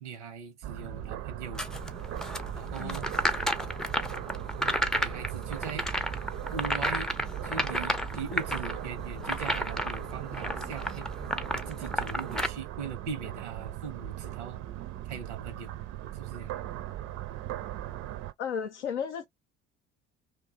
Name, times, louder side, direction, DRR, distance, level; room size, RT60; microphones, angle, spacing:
voice 1, 0.0-1.6 2.5-3.1 5.0-5.9 6.5-7.1 7.4-11.1 11.5-14.6 15.1-15.7 16.1-16.5, right 5 dB, 80° right, 0.8 m, -40 dB
sound 1, 0.6-18.3, right 13 dB, 50° right, 0.5 m, -39 dB
sound 2, 1.5-12.5, equal, ahead, 0.4 m, -32 dB
voice 2, 2.8-3.1 18.4-19.3, left 7 dB, 80° left, 0.6 m, -34 dB
2.5 x 2.2 x 3.7 m
figure-of-eight pair, 55°, 34 cm